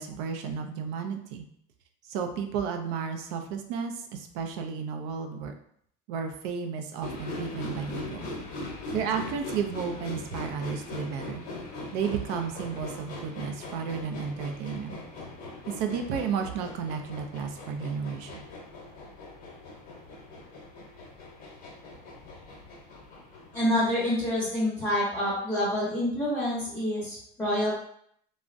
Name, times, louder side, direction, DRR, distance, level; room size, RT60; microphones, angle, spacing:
voice 1, 0.0-1.5 2.1-5.5 6.1-8.3 8.9-11.4 11.9-15.0 15.7-18.4, right 6 dB, 75° right, 5 dB, 0.5 m, -33 dB
sound 1, 7.0-23.8, left 2 dB, 50° left, 0.8 m, -41 dB
voice 2, 23.5-27.7, left 1 dB, 10° left, -9 dB, 0.8 m, -27 dB
3.4 x 2.1 x 2.5 m, 0.67 s
cardioid pair, 165°, 20 cm